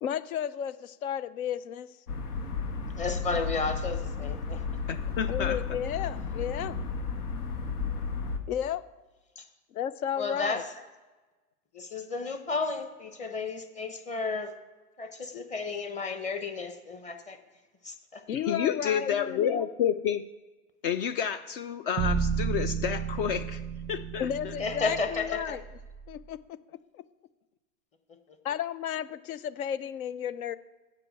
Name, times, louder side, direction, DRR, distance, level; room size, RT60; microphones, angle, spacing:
voice 1, 0.0-1.9 5.3-6.8 8.5-8.8 9.7-10.6 18.3-19.6 24.2-25.6 26.1-26.6 26.9-27.0 28.4-30.6, left 9 dB, 70° left, 16 dB, 0.7 m, -33 dB
sound 1, 2.1-8.4, left 5 dB, 90° left, 1.4 m, -33 dB
voice 2, 3.0-4.6 9.4-9.5 10.2-10.6 11.7-14.5 15.0-17.4 17.8-18.2 24.6-25.6, left 4 dB, 15° left, 7 dB, 1.0 m, -33 dB
voice 3, 4.9-5.6 18.3-20.3 20.8-23.6 23.9-24.5, left 8 dB, 40° left, 12 dB, 0.5 m, -30 dB
sound 2, 22.0-26.2, right 6 dB, 15° right, 0.5 m, -32 dB
7.8 x 5.7 x 7.6 m, 1.2 s
hypercardioid pair, 125°, 44 cm